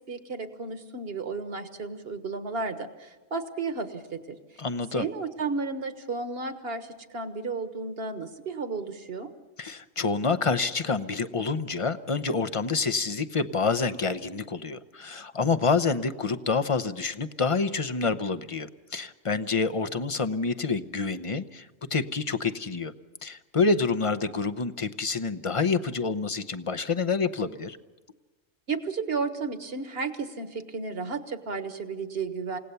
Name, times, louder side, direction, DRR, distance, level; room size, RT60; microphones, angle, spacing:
voice 1, 0.1-4.4 4.9-9.3 28.7-32.6, right 4 dB, 50° right, 8 dB, 1.6 m, -33 dB
voice 2, 4.6-5.1 9.6-22.9 23.2-27.8, left 4 dB, 30° left, 12 dB, 0.6 m, -27 dB
28.5 x 17.5 x 6.9 m, 1.2 s
omnidirectional pair, 1.3 m